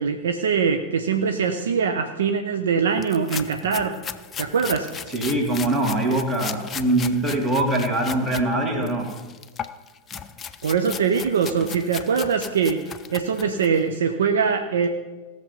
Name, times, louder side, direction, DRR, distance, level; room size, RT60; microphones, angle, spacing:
voice 1, 0.0-4.0 4.4-4.9 10.6-12.8 13.1-14.9, right 6 dB, 65° right, 7 dB, 0.6 m, -22 dB
sound 1, 3.0-8.5 8.8-13.8, left 7 dB, 20° left, 0.5 m, -37 dB
Thump thud, 3.6-3.9 4.9-5.0 6.4-6.7 7.2-7.3 8.8-9.0 9.8-9.9 10.1-10.3 11.6-11.9, equal, 5° right, 2.0 m, -42 dB
voice 2, 5.1-9.1, right 1 dB, 25° right, 3 dB, 2.2 m, -23 dB
17.0 x 6.7 x 5.4 m, 1.3 s
figure-of-eight pair, 90°, 0 cm